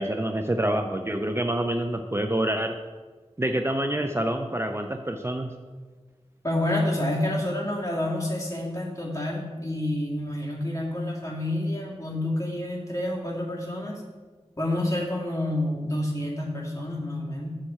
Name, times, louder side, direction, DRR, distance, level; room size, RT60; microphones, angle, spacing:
voice 1, 0.0-2.7 3.4-5.5, right 1 dB, 25° right, 5 dB, 0.5 m, -27 dB
voice 2, 6.4-14.0 14.6-17.5, left 1 dB, 30° left, -3 dB, 2.1 m, -28 dB
7.6 x 6.3 x 4.3 m, 1.4 s
wide cardioid pair, 55°, 11 cm